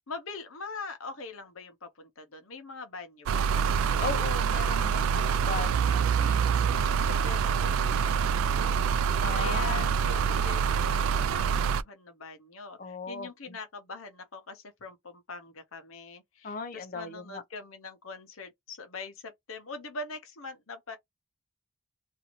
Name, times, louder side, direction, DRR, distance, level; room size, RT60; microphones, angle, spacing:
voice 1, 0.1-3.8 6.0-8.9 9.3-21.0, left 3 dB, 80° left, 0.8 m, -43 dB
sound 1, 3.3-11.8, right 7 dB, 80° right, 0.3 m, -26 dB
voice 2, 4.0-6.1 9.2-9.9 12.8-13.3 16.4-17.4, left 4 dB, 40° left, 0.6 m, -37 dB
2.6 x 2.6 x 3.0 m
head